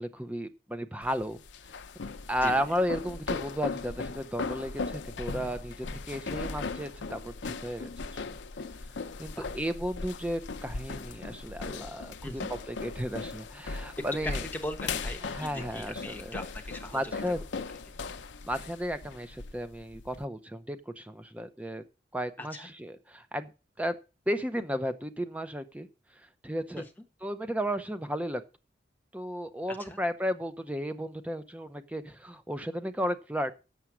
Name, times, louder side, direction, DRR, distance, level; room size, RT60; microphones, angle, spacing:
voice 1, 0.0-1.4 2.3-8.3 9.2-12.4 12.7-14.4 15.2-16.2 16.9-17.4 18.4-21.8 22.1-23.5 23.8-24.0 24.3-25.9 26.4-26.8 27.2-28.4 29.1-33.5, equal, 10° right, 0.7 m, -34 dB
sound 1, 1.0-20.2, left 4 dB, 85° left, 0.6 m, -38 dB
voice 2, 14.0-17.3 22.4-22.7 26.8-26.9 29.7-30.0, left 1 dB, 10° left, 1.1 m, -40 dB
7.4 x 6.9 x 6.1 m
head